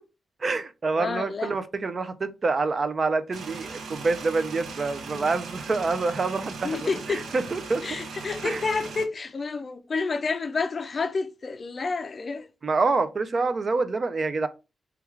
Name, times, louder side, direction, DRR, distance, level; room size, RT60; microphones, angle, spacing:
voice 1, 0.4-7.8 8.4-8.6 12.6-14.5, right 3 dB, 40° right, 0.4 m, -27 dB
voice 2, 1.0-1.5 5.1-5.3 6.6-7.3 7.8-12.5, left 4 dB, 40° left, 0.4 m, -29 dB
sound 1, 3.3-9.1, right 4 dB, 75° right, 0.6 m, -38 dB
3.4 x 2.3 x 3.1 m
cardioid pair, 105°, 0 cm